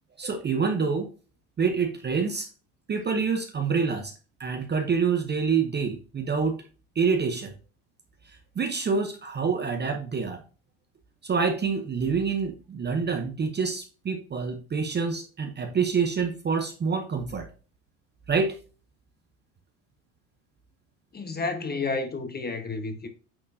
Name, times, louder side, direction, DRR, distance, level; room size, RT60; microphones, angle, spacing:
voice 1, 0.2-1.1 1.6-2.5 2.9-4.1 4.4-6.6 7.0-7.5 8.6-10.4 11.2-17.5 18.3-18.6, right 5 dB, 25° right, 0.8 m, -27 dB
voice 2, 21.1-23.1, left 3 dB, 20° left, 1.2 m, -31 dB
8.7 x 4.2 x 2.7 m
hypercardioid pair, 85°, 44 cm